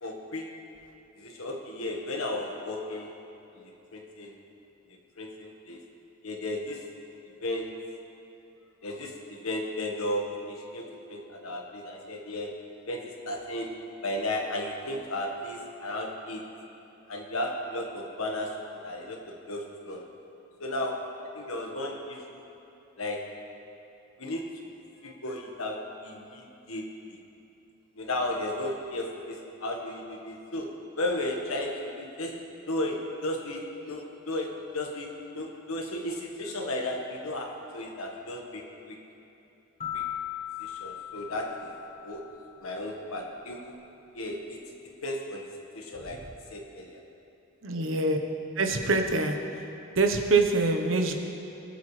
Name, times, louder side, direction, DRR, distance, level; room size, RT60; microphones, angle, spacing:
voice 1, 0.0-0.7 1.2-3.2 3.5-3.6 3.9-4.4 5.2-5.8 6.2-6.9 7.4-7.9 8.8-16.5 17.1-20.1 20.6-22.4 23.0-23.4 24.2-24.6 25.0-27.2 27.9-39.0 39.9-40.0 40.6-41.8 42.0-43.8 44.1-44.6 45.0-47.0, left 1 dB, 85° left, 1 dB, 1.4 m, -35 dB
sound 1, 39.8-42.6, left 11 dB, 35° left, 1.3 m, -38 dB
voice 2, 47.6-48.2 48.6-49.4 49.9-51.1, right 3 dB, 70° right, 4 dB, 1.0 m, -24 dB
21.0 x 8.2 x 3.3 m, 2.9 s
head